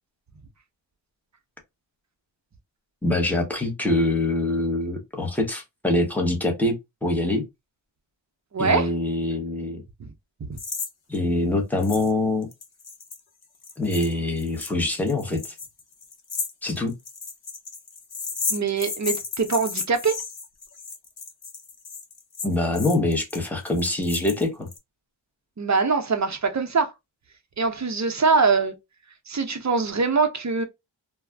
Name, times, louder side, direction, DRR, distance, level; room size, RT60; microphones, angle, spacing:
voice 1, 3.0-6.7 7.0-7.5 8.6-9.8 11.1-12.5 13.8-15.5 16.6-16.9 22.4-24.7, left 2 dB, 5° left, 0.8 m, -24 dB
voice 2, 8.5-8.9 10.0-10.1 10.5-10.6 18.5-20.2 25.6-26.9 27.6-28.7 29.3-30.6, right 4 dB, 40° right, 0.6 m, -23 dB
sound 1, 10.6-10.9 11.1-11.2 11.8-12.1 12.4-24.8, left 5 dB, 55° left, 0.7 m, -34 dB
2.4 x 2.0 x 3.3 m
wide cardioid pair, 95°, 46 cm